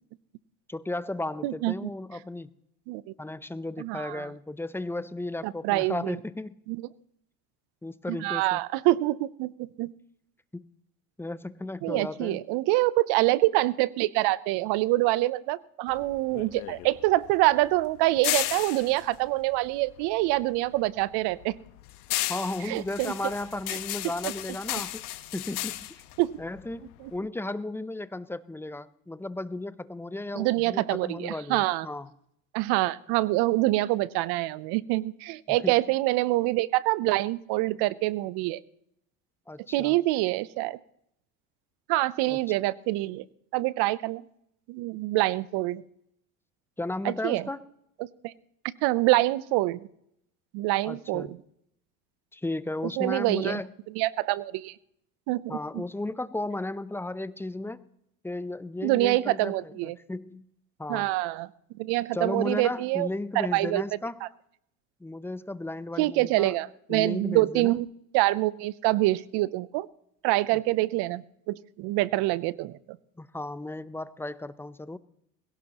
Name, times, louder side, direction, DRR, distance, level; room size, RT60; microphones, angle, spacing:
voice 1, 0.7-2.5 3.2-6.6 7.8-8.6 10.5-10.7 11.2-12.4 22.3-25.1 25.3-26.0 26.4-32.1 35.5-35.8 39.5-40.0 42.3-42.4 46.8-47.7 50.9-51.3 52.3-53.7 55.5-57.9 58.2-60.4 60.8-61.1 62.1-64.2 65.0-66.6 66.9-67.7 73.2-75.0, left 2 dB, 5° left, 16 dB, 0.6 m, -34 dB
voice 2, 1.4-1.9 2.9-3.0 3.8-4.3 5.4-6.1 6.7-6.8 8.1-9.9 11.8-21.6 22.7-23.1 24.2-24.3 26.2-26.4 30.4-31.9 32.5-38.6 39.7-40.8 41.9-43.2 43.5-44.2 44.7-45.8 47.0-47.4 48.2-48.3 48.6-49.8 50.5-51.4 53.0-53.6 54.0-54.7 55.3-55.8 58.8-60.0 60.9-61.5 61.8-63.1 63.4-63.8 64.2-64.3 66.0-67.9 68.1-69.9 70.2-72.8, right 18 dB, 60° right, 20 dB, 0.8 m, -26 dB
sound 1, 15.9-20.4 20.7-27.2, left 16 dB, 80° left, 1.3 m, -34 dB
21.0 x 17.0 x 3.0 m, 0.75 s
supercardioid pair, 95°, 43 cm